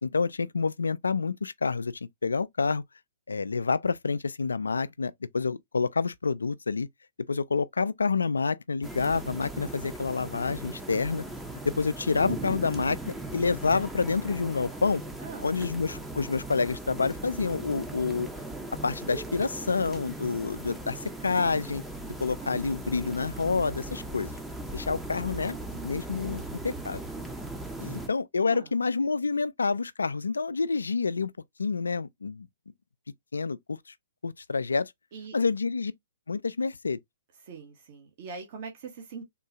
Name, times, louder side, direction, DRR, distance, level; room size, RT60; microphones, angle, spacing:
voice 1, 0.0-2.8 3.3-6.9 7.3-11.2 11.6-15.0 15.4-18.3 18.8-21.8 22.2-24.3 24.7-27.0 27.8-31.3 31.6-32.5 33.3-33.8 34.2-34.9 35.3-35.9 36.3-37.0, left 4 dB, 85° left, 0.3 m, -28 dB
sound 1, 8.8-28.1, right 2 dB, 5° right, 0.6 m, -38 dB
voice 2, 15.2-15.6 28.5-28.7 35.1-35.4 37.4-39.2, right 5 dB, 50° right, 1.0 m, -42 dB
3.7 x 2.3 x 2.7 m
hypercardioid pair, 125°, 0 cm